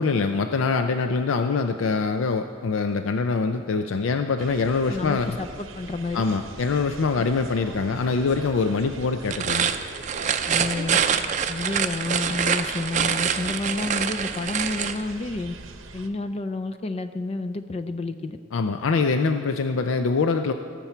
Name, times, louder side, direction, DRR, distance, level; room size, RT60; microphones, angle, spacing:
voice 1, 0.0-5.4 6.1-9.7 18.5-20.5, left 4 dB, 90° left, 7 dB, 0.5 m, -24 dB
sound 1, 4.4-16.1, right 3 dB, 80° right, 0.8 m, -42 dB
voice 2, 4.9-6.2 10.5-11.0 11.5-15.6 15.9-18.4, left 2 dB, 30° left, 9 dB, 0.4 m, -30 dB
sound 2, 9.2-15.0, right 7 dB, 35° right, 0.5 m, -25 dB
18.5 x 7.0 x 4.4 m, 2.6 s
head